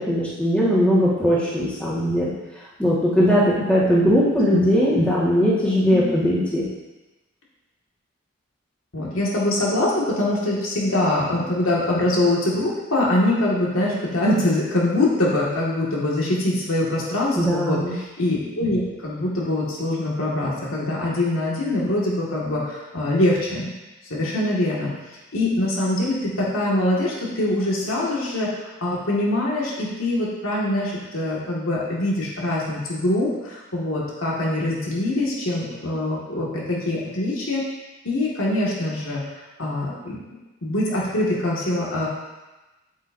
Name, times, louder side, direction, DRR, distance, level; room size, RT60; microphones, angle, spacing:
voice 1, 0.0-2.3 2.8-6.7 17.4-17.9, equal, 5° left, -8 dB, 1.7 m, -19 dB
voice 2, 8.9-23.7 24.1-24.9 25.3-28.5 28.8-37.6 38.0-39.2 39.6-40.2 40.6-42.1, left 1 dB, 85° left, -5 dB, 2.0 m, -23 dB
8.3 x 7.8 x 2.7 m, 1.1 s
head